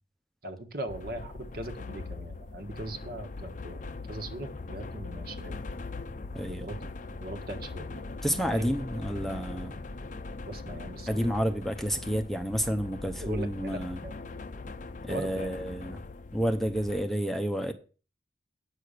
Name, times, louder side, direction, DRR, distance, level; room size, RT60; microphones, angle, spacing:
voice 1, 0.4-5.6 6.5-6.7 7.2-8.0 8.4-8.7 10.4-11.3 13.2-14.1 15.1-15.6, right 1 dB, 55° right, 7 dB, 1.5 m, -40 dB
sound 1, 0.9-17.0, left 3 dB, 45° left, 0.6 m, -41 dB
voice 2, 6.3-6.7 8.2-9.8 11.1-14.0 15.0-16.0 16.3-17.7, equal, ahead, 5 dB, 0.7 m, -30 dB
8.9 x 6.4 x 6.6 m, 0.36 s
head